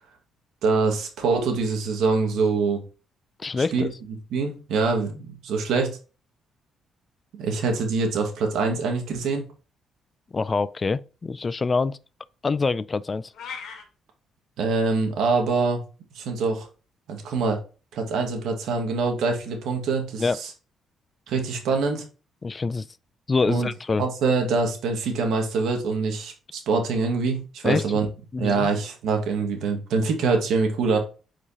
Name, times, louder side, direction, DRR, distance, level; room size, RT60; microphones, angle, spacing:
voice 1, 0.6-2.8 3.7-3.9 4.3-6.0 7.4-9.5 14.6-15.8 16.2-16.7 17.1-17.6 17.9-20.5 21.3-22.0 23.5-23.7 24.0-28.1 28.4-31.0, right 4 dB, 80° right, 1.8 m, -24 dB
voice 2, 3.4-3.9 10.3-12.0 12.4-13.3 20.2-20.4 22.4-22.9 23.3-24.1 27.6-27.8 28.3-28.7, left 4 dB, 30° left, 0.3 m, -25 dB
sound 1, 13.3-13.8, left 6 dB, 75° left, 1.9 m, -36 dB
8.3 x 5.0 x 2.9 m
cardioid pair, 90°, 0 cm